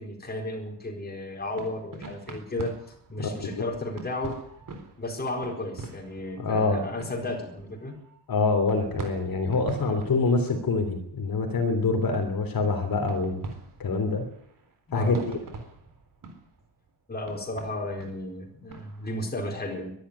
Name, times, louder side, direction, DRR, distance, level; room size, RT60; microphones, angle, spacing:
voice 1, 0.0-2.7 3.1-4.4 5.0-7.9 9.8-10.0 14.9-15.2 17.1-19.9, left 1 dB, 20° left, 2 dB, 4.3 m, -33 dB
sound 1, 1.3-8.2 8.6-10.8 11.3-11.6 12.1-19.3, right 3 dB, 50° right, 3.9 m, -44 dB
voice 2, 3.2-3.6 6.4-6.8 8.3-13.4 13.8-14.2 14.9-15.4, left 3 dB, 55° left, 5 dB, 3.3 m, -25 dB
22.5 x 12.0 x 9.8 m, 0.68 s
wide cardioid pair, 175°, 42 cm